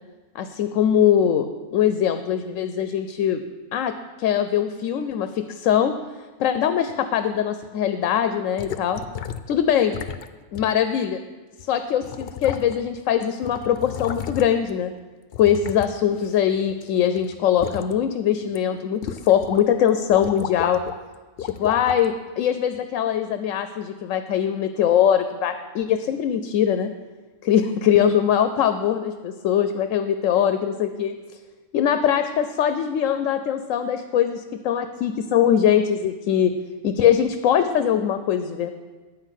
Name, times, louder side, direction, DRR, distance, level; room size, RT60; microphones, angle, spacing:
voice 1, 0.3-3.4 3.7-5.9 6.4-9.0 9.5-9.9 10.5-11.2 11.7-14.9 15.4-20.8 21.4-26.9 27.4-31.1 31.7-36.5 36.8-38.7, left 9 dB, 90° left, 9 dB, 1.0 m, -22 dB
sound 1, 8.6-9.5 9.9-10.3 10.5-10.7 11.6-11.7 12.0-13.0 13.2-14.7 15.3-16.8 17.2-17.9 18.4-18.6 19.0-19.6 19.9-21.0 21.4-22.1 22.7-22.8, left 9 dB, 60° left, 0.7 m, -33 dB
10.0 x 5.9 x 8.1 m, 1.3 s
omnidirectional pair, 1.3 m